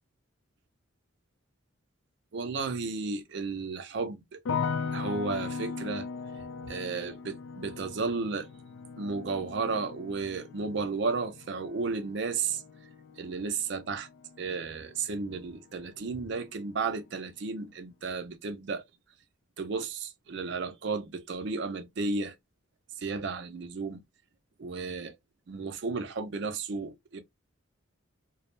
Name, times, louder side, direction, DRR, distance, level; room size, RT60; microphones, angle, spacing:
voice 1, 2.3-4.4 4.9-6.1 6.6-8.5 9.0-12.6 13.2-14.1 14.4-18.8 19.6-22.3 23.0-24.0 24.6-25.1 25.5-27.2, right 4 dB, 60° right, 0.5 m, -33 dB
sound 1, 4.4-15.5 15.8-16.5, left 5 dB, 75° left, 0.4 m, -39 dB
2.2 x 2.0 x 3.0 m
head